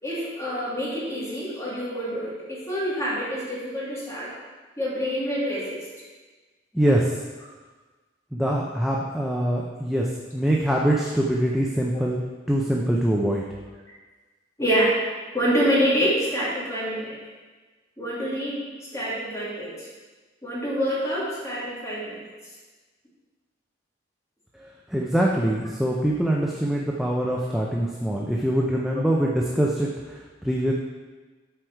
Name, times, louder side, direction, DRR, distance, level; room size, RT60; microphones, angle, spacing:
voice 1, 0.0-4.3 4.8-5.8 14.6-14.9 15.3-17.2 18.0-18.6 18.9-19.9 20.4-22.3 29.0-29.1, equal, 15° left, -7 dB, 2.2 m, -26 dB
voice 2, 6.7-7.2 8.3-13.5 24.5-30.7, right 1 dB, ahead, -3 dB, 0.5 m, -24 dB
7.8 x 4.7 x 4.6 m, 1.3 s
head